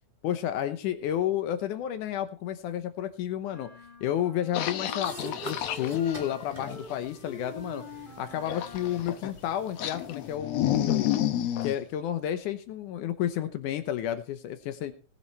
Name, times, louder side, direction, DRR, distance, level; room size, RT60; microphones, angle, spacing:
voice 1, 0.2-3.7 4.0-7.8 8.2-11.1 11.6-14.9, left 11 dB, 80° left, 10 dB, 2.5 m, -31 dB
sound 1, 3.5-9.2, left 3 dB, 20° left, 1.4 m, -46 dB
sound 2, 4.5-7.0 8.5-9.4 9.8-11.7, left 11 dB, 65° left, 2.0 m, -30 dB
sound 3, 5.0-10.4, right 2 dB, 15° right, 3.1 m, -46 dB
19.0 x 7.9 x 4.2 m, 0.36 s
omnidirectional pair, 3.5 m